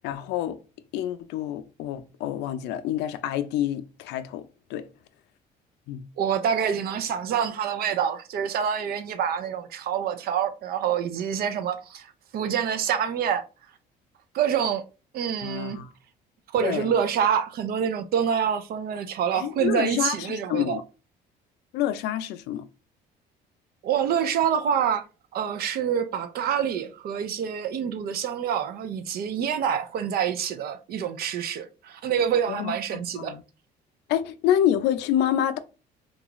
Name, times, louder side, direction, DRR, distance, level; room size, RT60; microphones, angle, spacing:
voice 1, 0.0-0.6 0.9-4.9 5.9-6.1 15.4-15.9 16.6-16.9 19.3-20.8 21.7-22.7 32.5-33.4 34.1-35.6, left 11 dB, 85° left, 0.4 m, -27 dB
voice 2, 6.2-13.5 14.3-14.8 15.1-15.8 16.5-20.8 23.8-25.0 25.3-33.4, right 8 dB, 65° right, 0.6 m, -26 dB
3.8 x 2.3 x 3.0 m
cardioid pair, 110°, 17 cm